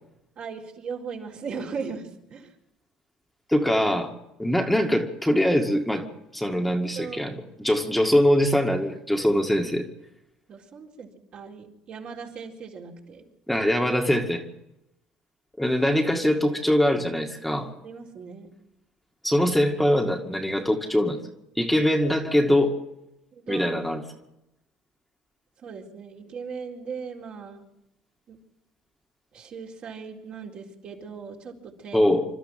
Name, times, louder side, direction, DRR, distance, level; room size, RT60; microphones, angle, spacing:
voice 1, 0.4-2.5 6.5-6.6 6.9-7.2 10.5-13.3 17.8-18.5 23.3-23.7 25.6-27.7 28.3-28.4 29.3-32.1, right 5 dB, 50° right, 0 dB, 4.0 m, -38 dB
voice 2, 3.5-4.1 4.4-6.1 6.3-9.8 13.5-14.4 15.6-17.7 19.2-21.2 21.6-22.7 23.5-24.0 31.9-32.3, left 1 dB, 5° left, 3 dB, 2.1 m, -22 dB
27.5 x 12.5 x 7.7 m, 0.90 s
supercardioid pair, 80°, 2 cm